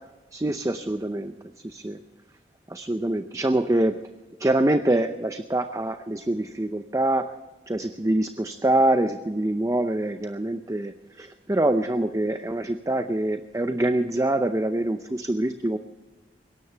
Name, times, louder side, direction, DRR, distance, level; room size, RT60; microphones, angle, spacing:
voice 1, 0.3-1.3 1.6-2.0 2.7-4.0 4.4-7.3 7.7-15.8, right 1 dB, 20° right, 8 dB, 0.6 m, -25 dB
21.5 x 17.5 x 3.4 m, 1.2 s
head